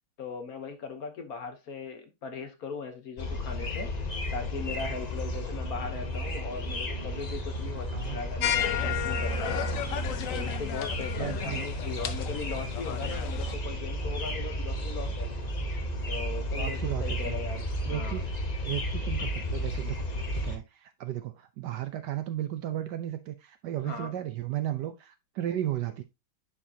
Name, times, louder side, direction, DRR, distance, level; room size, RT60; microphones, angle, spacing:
voice 1, 0.2-3.9 4.3-9.7 10.3-15.3 16.1-18.3 23.8-24.1, left 5 dB, 55° left, 1.3 m, -39 dB
sound 1, 3.2-20.6, equal, 40° left, 0.6 m, -33 dB
sound 2, 8.4-13.6, left 10 dB, 75° left, 0.7 m, -33 dB
voice 2, 10.9-11.7 16.5-17.4 17.8-18.3 18.6-20.0 20.4-26.0, right 12 dB, 70° right, 1.0 m, -34 dB
10.0 x 4.5 x 2.7 m
omnidirectional pair, 2.2 m